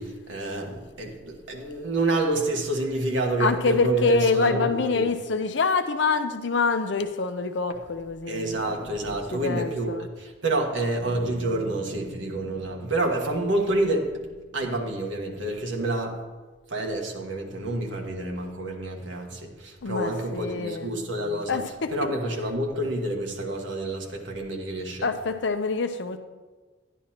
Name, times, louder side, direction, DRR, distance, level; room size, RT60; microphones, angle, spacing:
voice 1, 0.0-5.1 8.3-14.3 14.5-16.2 16.7-21.6 21.9-25.1, right 2 dB, 80° right, 1 dB, 1.3 m, -28 dB
voice 2, 3.4-8.7 9.3-10.1 19.8-20.9 21.5-21.9 25.0-26.2, left 4 dB, 70° left, 8 dB, 0.6 m, -26 dB
sound 1, 11.0-15.0, right 1 dB, 40° right, 2.8 m, -44 dB
11.0 x 11.0 x 2.9 m, 1.3 s
head